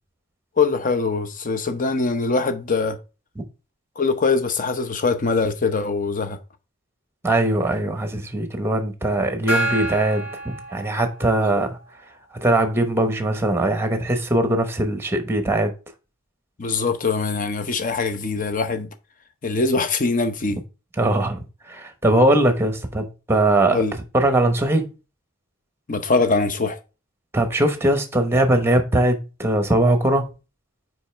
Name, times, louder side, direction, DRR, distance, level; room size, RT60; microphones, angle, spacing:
voice 1, 0.6-3.0 4.0-6.4 11.4-11.5 16.6-18.9 19.4-20.6 23.7-23.9 25.9-26.8, left 4 dB, 40° left, 0.7 m, -22 dB
voice 2, 7.2-11.8 12.4-15.7 21.0-23.8 24.1-24.9 27.3-30.3, right 1 dB, 10° right, 0.9 m, -20 dB
Gong, 9.5-11.5, right 1 dB, 80° left, 3.4 m, -28 dB
5.3 x 4.7 x 4.4 m
head